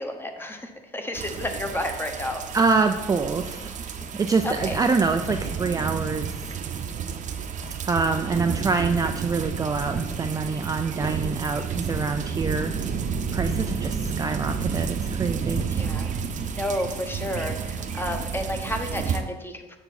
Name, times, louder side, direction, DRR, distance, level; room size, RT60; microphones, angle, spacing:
voice 1, 0.0-2.6 4.4-4.8 15.7-16.2 16.5-19.8, left 1 dB, 15° left, 5 dB, 1.0 m, -31 dB
sound 1, 1.1-19.2, right 6 dB, 50° right, 0.8 m, -30 dB
sound 2, 1.6-2.1 2.8-3.0 4.0-4.2 5.2-5.5 6.4-6.7 7.6-7.9 8.7-9.0 9.8-10.0 11.0-11.3 12.1-12.4 13.3-13.5 14.5-14.7 15.5-15.8 16.7-16.9 17.8-18.0, left 4 dB, 50° left, 1.3 m, -43 dB
voice 2, 2.5-3.7 4.1-6.3 7.8-12.7 13.3-15.7, right 4 dB, 20° right, 5 dB, 0.4 m, -25 dB
6.9 x 6.8 x 4.1 m, 1.1 s
cardioid pair, 110°, 17 cm